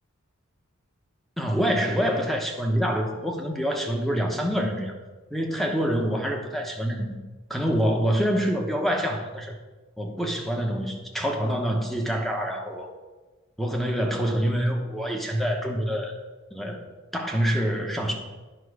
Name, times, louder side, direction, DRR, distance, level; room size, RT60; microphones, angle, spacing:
voice 1, 1.4-4.9 5.3-7.2 7.5-9.5 10.0-12.9 13.6-16.1 16.5-16.8 17.1-18.1, equal, ahead, 2 dB, 1.0 m, -26 dB
10.0 x 5.6 x 4.9 m, 1.2 s
head